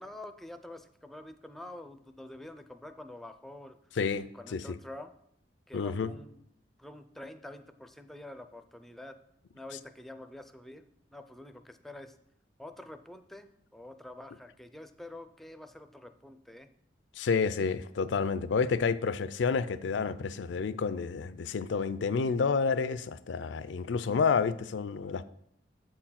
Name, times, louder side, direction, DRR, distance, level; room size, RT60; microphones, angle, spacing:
voice 1, 0.0-3.8 4.3-5.1 5.7-6.4 6.8-9.2 9.5-10.8 11.1-12.1 12.6-16.7, left 1 dB, ahead, 8 dB, 0.4 m, -47 dB
voice 2, 4.0-4.8 5.7-6.1 17.2-25.2, left 5 dB, 80° left, 14 dB, 0.4 m, -29 dB
7.8 x 4.5 x 5.7 m, 0.72 s
head